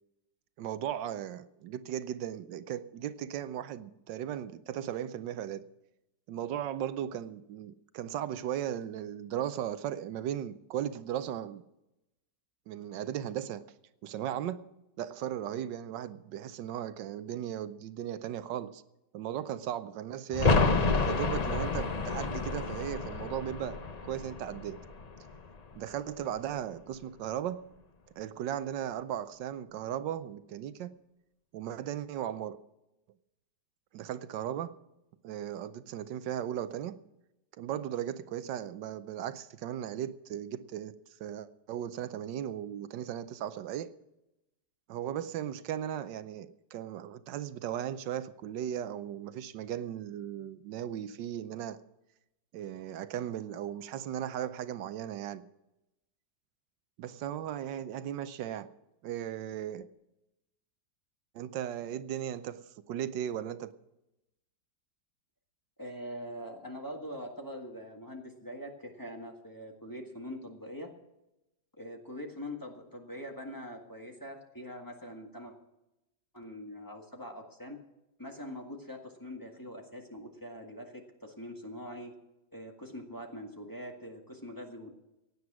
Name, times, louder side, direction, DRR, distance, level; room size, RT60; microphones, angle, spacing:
voice 1, 0.6-5.7 6.3-11.6 12.7-13.7 14.0-14.7 15.0-18.8 19.1-20.6 21.0-24.8 25.7-27.7 28.2-30.9 31.5-32.6 33.9-34.7 35.2-37.0 37.6-40.9 41.2-43.9 44.9-51.8 52.5-55.5 57.0-58.7 59.0-59.9 61.3-63.7, right 10 dB, 85° right, 13 dB, 1.4 m, -37 dB
sound 1, 20.3-25.9 26.2-26.3, left 3 dB, 40° left, 0.5 m, -30 dB
voice 2, 65.8-70.9 71.8-75.5 76.3-77.8 78.2-82.1 82.5-84.9, equal, 10° left, 1 dB, 1.6 m, -43 dB
16.5 x 9.6 x 6.1 m, 0.92 s
omnidirectional pair, 1.9 m